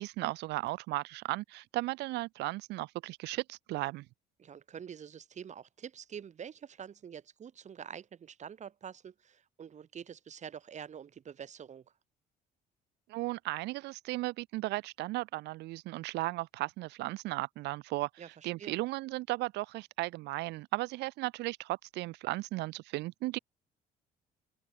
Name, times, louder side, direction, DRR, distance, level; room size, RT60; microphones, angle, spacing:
voice 1, 0.0-4.0 13.1-23.4, right 19 dB, 85° right, 4.3 m, -36 dB
voice 2, 4.4-11.8 18.2-18.8, right 8 dB, 45° right, 5.2 m, -46 dB
open air
cardioid pair, 110°, 17 cm